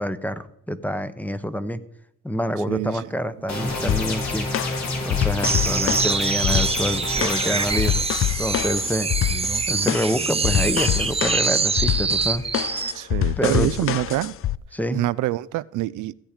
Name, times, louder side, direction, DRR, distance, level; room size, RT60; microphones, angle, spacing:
voice 1, 0.0-1.8 2.2-4.5 5.0-8.0 8.4-9.1 9.4-12.4 12.7-12.9 13.4-13.7 14.7-15.0, equal, 5° left, 1.0 m, -27 dB
voice 2, 2.7-3.0 12.9-14.3 14.9-16.1, right 16 dB, 80° right, 0.5 m, -25 dB
sound 1, 3.5-7.9, left 2 dB, 65° left, 4.5 m, -29 dB
sound 2, 3.9-14.6, left 12 dB, 45° left, 0.4 m, -26 dB
sound 3, 5.4-13.0, right 5 dB, 20° right, 0.6 m, -24 dB
16.0 x 8.9 x 5.1 m
cardioid pair, 90°, 30 cm